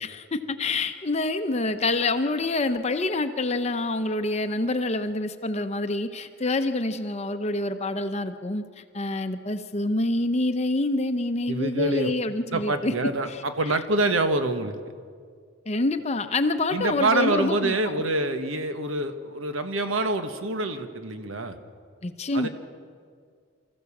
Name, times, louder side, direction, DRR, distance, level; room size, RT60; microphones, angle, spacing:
voice 1, 0.0-12.9 13.3-13.8 15.7-17.7 22.0-22.5, left 2 dB, 30° left, 8 dB, 0.7 m, -27 dB
voice 2, 11.5-12.1 12.5-14.8 16.7-21.6 22.3-22.5, right 2 dB, 85° right, 8 dB, 1.4 m, -26 dB
25.5 x 14.5 x 7.2 m, 2.1 s
head